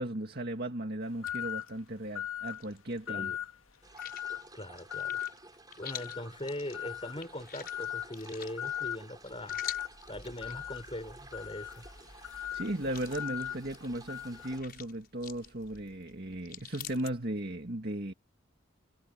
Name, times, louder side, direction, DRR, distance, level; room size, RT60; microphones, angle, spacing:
voice 1, 0.0-3.3 12.5-18.1, right 1 dB, 45° right, 2.0 m, -36 dB
sound 1, 1.2-1.7 2.1-2.6 3.1-3.5 4.0-4.4 4.9-5.3 5.8-6.3 6.7-7.2 7.7-8.1 8.6-9.0 9.5-9.9 10.4-14.6, left 11 dB, 65° left, 1.7 m, -38 dB
sound 2, 1.2-3.1 3.3-17.1, left 9 dB, 45° left, 6.3 m, -49 dB
voice 2, 3.1-3.4 4.5-5.2 5.8-9.6 10.1-11.8, left 1 dB, 25° left, 5.6 m, -41 dB
sound 3, 3.8-14.6, right 2 dB, 20° right, 7.4 m, -53 dB
head